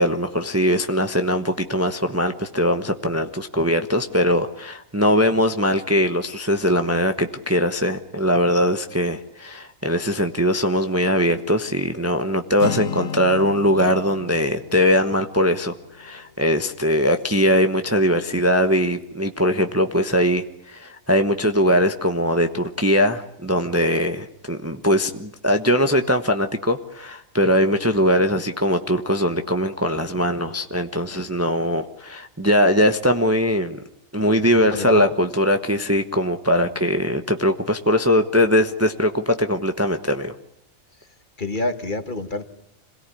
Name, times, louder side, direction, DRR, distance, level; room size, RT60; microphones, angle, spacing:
voice 1, 0.0-33.8 34.1-40.3, equal, 10° right, 7 dB, 1.0 m, -21 dB
Acoustic guitar, 12.6-16.5, left 8 dB, 85° left, 1.9 m, -34 dB
voice 2, 34.7-35.1 41.4-42.4, left 2 dB, 40° left, 8 dB, 1.7 m, -27 dB
26.5 x 18.0 x 9.9 m, 0.75 s
omnidirectional pair, 1.4 m